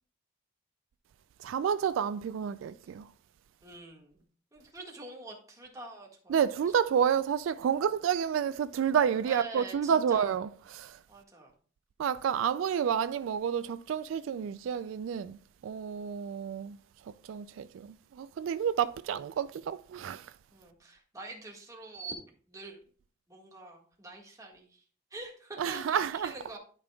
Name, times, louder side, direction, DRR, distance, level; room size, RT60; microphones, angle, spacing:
voice 1, 1.4-3.1 6.3-11.0 12.0-15.4 15.6-16.8 17.0-20.3 25.6-26.3, right 8 dB, 80° right, 0.3 m, -30 dB
voice 2, 3.6-4.2 4.5-6.4 9.3-10.3 11.1-11.5 20.5-22.1 22.5-22.8 23.3-24.8 25.1-26.6, right 2 dB, 15° right, 1.6 m, -45 dB
12.0 x 5.3 x 2.3 m
head